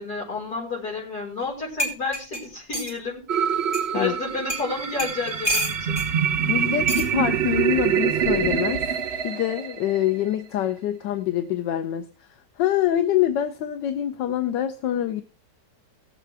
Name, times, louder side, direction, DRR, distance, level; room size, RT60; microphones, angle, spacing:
voice 1, 0.0-3.5 3.9-6.0, left 3 dB, 60° left, -4 dB, 5.3 m, -31 dB
sound 1, 1.4-1.5 1.8-3.0 3.7-3.8 4.5-4.7 5.0-6.1 6.9-7.1 8.2-8.5, right 1 dB, 20° left, 3.3 m, -28 dB
sound 2, 3.3-10.3, right 8 dB, 50° right, 0.8 m, -25 dB
voice 2, 6.5-8.9 9.2-12.1 12.6-15.2, left 11 dB, 85° left, 9 dB, 1.4 m, -25 dB
18.5 x 7.8 x 3.4 m, 0.36 s
omnidirectional pair, 1.9 m